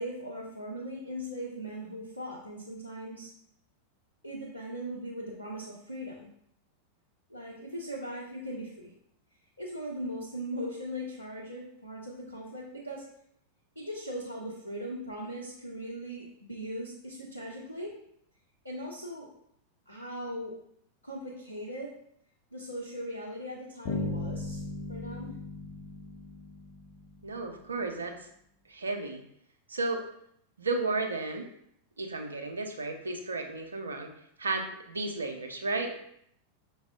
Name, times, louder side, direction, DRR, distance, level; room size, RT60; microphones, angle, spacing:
voice 1, 0.0-3.3 4.2-6.3 7.3-8.9 9.6-13.1 13.8-18.0 18.6-19.3 19.9-20.5 21.0-21.9 22.5-24.6 24.9-25.3, equal, 85° left, -4 dB, 0.5 m, -39 dB
Bass guitar, 23.8-27.6, left 2 dB, 35° left, 0.8 m, -37 dB
voice 2, 27.2-28.3 28.7-29.2 29.7-30.1 30.6-31.5 32.0-34.1 34.4-36.0, right 3 dB, 75° right, 4 dB, 0.5 m, -33 dB
5.7 x 2.0 x 2.3 m, 0.70 s
figure-of-eight pair, 90°, 0 cm